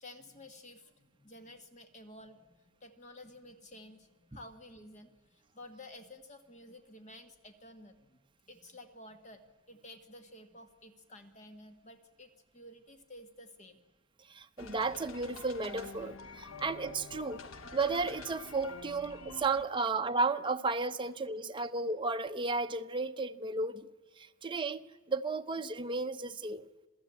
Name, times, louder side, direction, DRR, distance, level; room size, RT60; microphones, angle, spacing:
voice 1, 0.0-13.8 18.9-19.0, left 1 dB, 35° left, 1.7 m, -53 dB
voice 2, 14.3-17.4 17.7-23.9 24.2-24.8 25.1-26.7, right 3 dB, 25° right, 0.8 m, -33 dB
sound 1, 14.6-19.7, left 3 dB, 75° left, 1.1 m, -47 dB
27.5 x 16.5 x 8.5 m
head